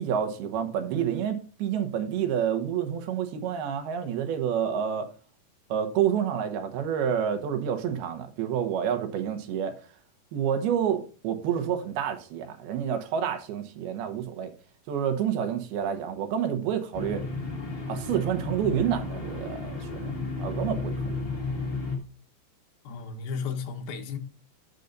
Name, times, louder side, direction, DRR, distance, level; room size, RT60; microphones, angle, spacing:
voice 1, 0.0-5.1 5.7-9.8 10.3-14.5 14.9-17.2 17.9-20.1 20.4-21.2, right 8 dB, 85° right, 3.1 m, -28 dB
sound 1, 16.9-22.0, left 3 dB, 90° left, 0.5 m, -33 dB
voice 2, 22.8-24.2, left 5 dB, 75° left, 2.8 m, -34 dB
9.3 x 6.7 x 3.9 m
omnidirectional pair, 4.4 m